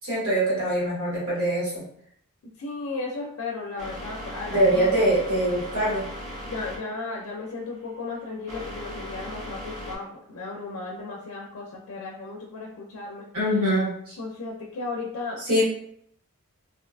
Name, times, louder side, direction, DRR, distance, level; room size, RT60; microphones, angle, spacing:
voice 1, 0.0-1.8 4.5-6.1 13.3-14.2 15.4-15.6, right 1 dB, 85° right, -7 dB, 1.5 m, -23 dB
voice 2, 2.6-4.9 6.4-13.3 14.2-15.4, left 3 dB, 80° left, -2 dB, 0.4 m, -35 dB
sound 1, 3.8-10.0, equal, 35° right, 0.6 m, -38 dB
2.6 x 2.2 x 2.4 m, 0.67 s
head